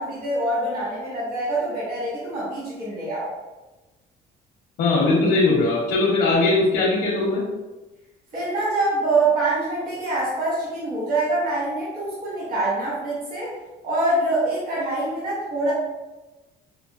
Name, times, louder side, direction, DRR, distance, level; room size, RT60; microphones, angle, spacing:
voice 1, 0.0-3.3 8.3-13.5 13.8-15.7, right 2 dB, 60° right, -8 dB, 1.5 m, -25 dB
voice 2, 4.8-7.4, left 3 dB, 80° left, -5 dB, 0.9 m, -20 dB
5.5 x 2.1 x 2.4 m, 1.1 s
cardioid pair, 110°, 17 cm